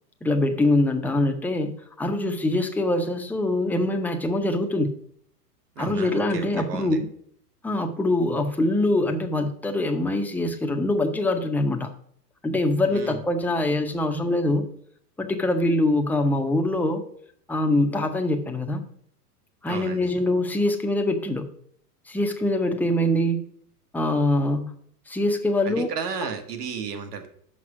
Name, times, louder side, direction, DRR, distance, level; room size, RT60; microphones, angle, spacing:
voice 1, 0.2-4.9 5.8-7.1 7.6-11.9 12.4-14.7 15.2-17.0 17.5-18.8 19.6-21.5 22.1-23.4 23.9-24.7 25.1-25.9, left 1 dB, 5° left, 4 dB, 0.7 m, -24 dB
voice 2, 5.7-7.0 12.9-13.2 19.7-20.1 25.6-27.3, right 6 dB, 75° right, 6 dB, 1.7 m, -33 dB
6.3 x 5.4 x 5.9 m, 0.64 s
hypercardioid pair, 115°, 47 cm